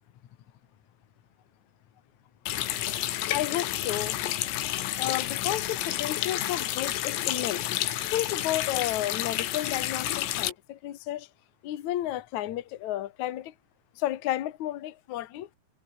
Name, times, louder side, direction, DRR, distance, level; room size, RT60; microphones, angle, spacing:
Water tap faucet, 2.5-10.5, left 14 dB, 85° left, 4.5 m, -30 dB
voice 1, 3.3-4.2 5.0-7.7 8.1-11.3 11.6-13.5 14.0-15.5, left 13 dB, 70° left, 1.8 m, -32 dB
omnidirectional pair, 5.9 m